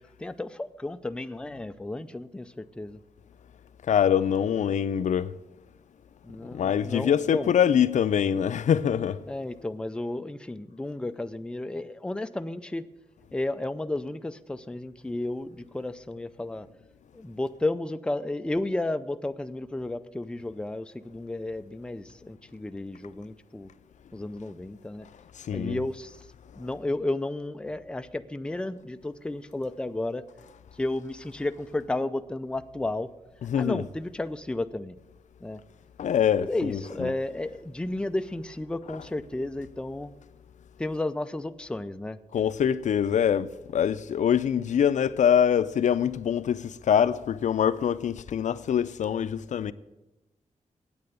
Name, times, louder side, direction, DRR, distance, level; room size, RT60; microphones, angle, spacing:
voice 1, 0.2-3.0 6.2-7.5 9.3-12.9 13.3-16.7 17.1-23.7 24.1-25.1 25.5-26.2 26.5-30.3 30.7-33.1 33.5-35.0 35.4-35.6 36.4-40.1 40.8-42.2, left 2 dB, 5° left, 0.4 m, -32 dB
voice 2, 3.9-5.3 6.5-9.2 25.4-25.8 33.4-33.8 36.0-37.1 38.9-39.1 42.3-49.7, left 8 dB, 75° left, 0.4 m, -24 dB
8.8 x 8.4 x 7.9 m
wide cardioid pair, 120°, 13 cm